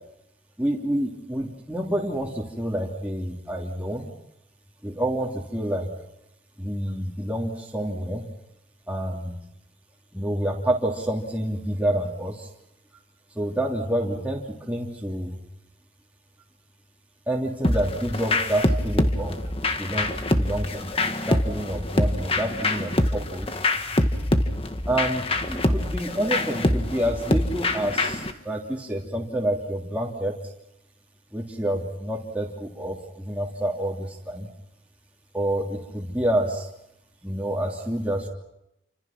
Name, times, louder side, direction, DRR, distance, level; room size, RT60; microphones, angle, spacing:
voice 1, 0.6-4.1 4.8-5.9 6.6-8.3 8.9-9.4 10.1-12.5 13.3-15.4 17.3-19.4 19.8-20.9 21.3-23.5 24.9-30.4 31.3-34.5 35.3-36.7 37.2-38.3, right 1 dB, 10° right, -3 dB, 3.1 m, -28 dB
sound 1, 17.6-28.3, left 1 dB, 30° left, 1.7 m, -25 dB
29.0 x 26.0 x 6.1 m, 0.84 s
head